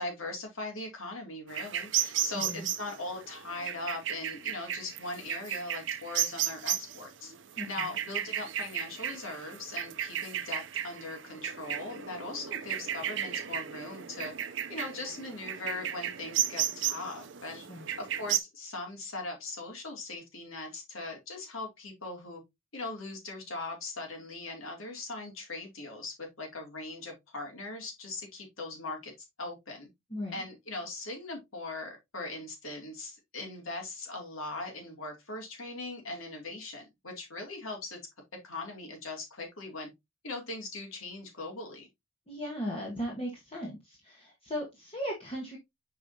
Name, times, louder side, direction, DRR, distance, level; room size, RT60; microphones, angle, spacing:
voice 1, 0.0-7.3 7.7-14.3 14.7-17.6 18.0-22.4 22.7-29.1 29.4-29.9 30.3-38.0 38.4-39.9 40.2-41.9, left 2 dB, 85° left, 2.8 m, -40 dB
sound 1, 1.5-18.4, right 11 dB, 60° right, 0.6 m, -34 dB
voice 2, 2.3-2.7 7.6-7.9 17.5-17.9 30.1-30.4 42.3-45.6, equal, 25° left, 1.3 m, -37 dB
7.3 x 4.7 x 2.8 m
head